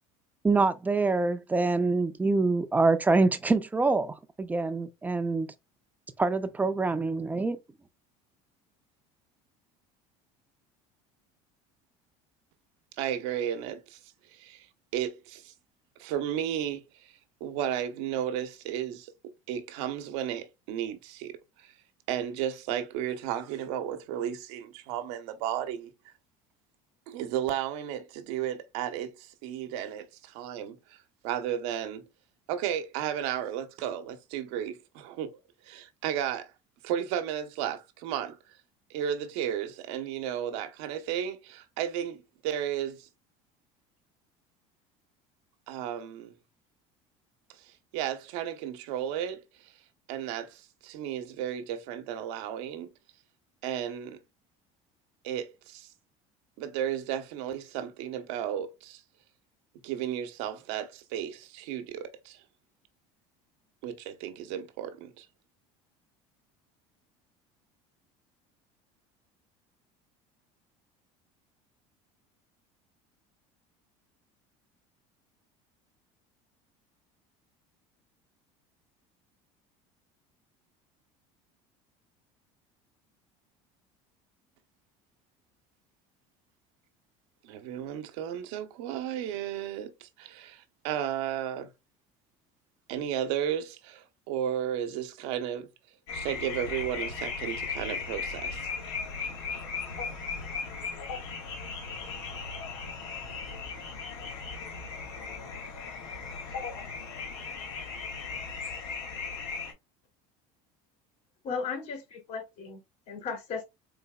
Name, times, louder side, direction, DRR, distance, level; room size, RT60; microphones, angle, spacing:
voice 1, 0.4-5.5 6.2-7.6, right 3 dB, 10° right, 0.4 m, -25 dB
voice 2, 13.0-14.0 14.3-14.7 14.9-15.5 16.0-21.7 22.1-26.1 27.1-32.1 32.5-35.4 35.6-36.5 36.8-38.4 38.9-43.1 45.7-46.3 47.5-49.7 50.1-52.9 53.6-54.2 55.2-55.9 56.6-59.0 59.8-62.4 63.8-65.3 87.4-91.7 92.9-95.7 96.1-98.6, right 10 dB, 80° right, 0.8 m, -34 dB
sound 1, 96.1-109.7, left 5 dB, 80° left, 2.2 m, -37 dB
voice 3, 111.4-112.8 113.1-113.6, left 5 dB, 55° left, 2.6 m, -35 dB
3.9 x 3.9 x 2.3 m
cardioid pair, 125°, 15 cm